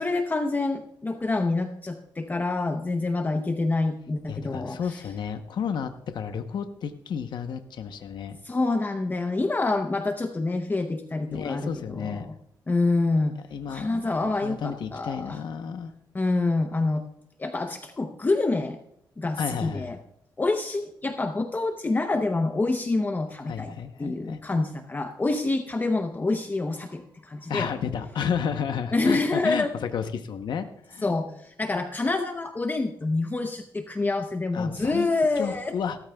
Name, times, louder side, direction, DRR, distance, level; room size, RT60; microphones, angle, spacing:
voice 1, 0.0-5.0 8.4-12.3 12.7-13.4 13.7-15.4 16.1-17.0 17.4-18.8 19.2-20.0 20.4-27.7 28.9-29.7 31.0-35.7, left 3 dB, 25° left, 6 dB, 0.8 m, -27 dB
voice 2, 4.3-8.4 11.3-12.3 13.5-15.9 19.4-19.9 23.5-24.4 27.5-31.1 34.5-35.1 35.4-36.0, left 7 dB, 70° left, 7 dB, 0.8 m, -32 dB
16.5 x 14.0 x 2.3 m, 0.76 s
cardioid pair, 100°, 8 cm